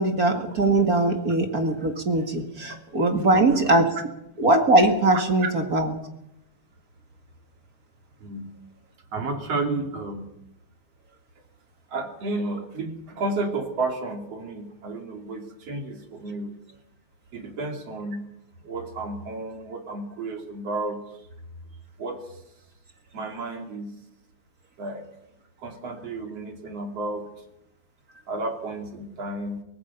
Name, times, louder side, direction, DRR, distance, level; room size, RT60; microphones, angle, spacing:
voice 1, 0.0-3.9 4.4-5.9, right 2 dB, 35° right, 5 dB, 2.0 m, -21 dB
voice 2, 3.1-3.7 8.2-8.5 9.1-10.4 11.9-16.6 17.3-18.2 18.6-21.0 22.0-22.4 23.1-23.9 24.8-25.1 25.6-27.3 28.3-29.6, right 2 dB, 55° right, 3 dB, 3.8 m, -32 dB
24.0 x 18.5 x 5.8 m, 0.83 s
omnidirectional pair, 3.4 m